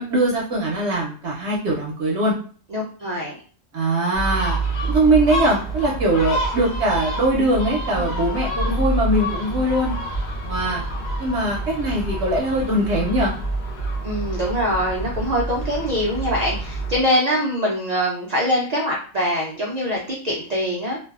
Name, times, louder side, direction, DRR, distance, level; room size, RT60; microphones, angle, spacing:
voice 1, 0.0-2.3 3.7-4.6 4.8-9.9 10.5-10.8 11.2-13.3, right 1 dB, 65° right, -2 dB, 0.8 m, -21 dB
voice 2, 2.7-3.4 14.0-21.0, equal, 90° right, -1 dB, 0.3 m, -23 dB
Gull seagull, 4.1-17.0, right 2 dB, 60° left, 0.9 m, -27 dB
2.5 x 2.2 x 2.3 m, 0.43 s
omnidirectional pair, 1.3 m